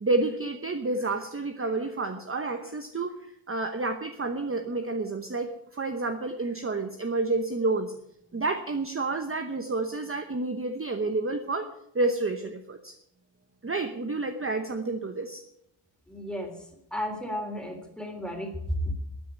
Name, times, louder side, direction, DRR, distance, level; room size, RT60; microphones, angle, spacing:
voice 1, 0.0-7.9 8.3-11.7 11.9-12.9 13.6-15.4, right 3 dB, 25° right, 6 dB, 1.0 m, -29 dB
voice 2, 16.1-18.9, equal, ahead, 3 dB, 3.3 m, -33 dB
13.5 x 9.4 x 9.4 m, 0.78 s
wide cardioid pair, 160°, 50 cm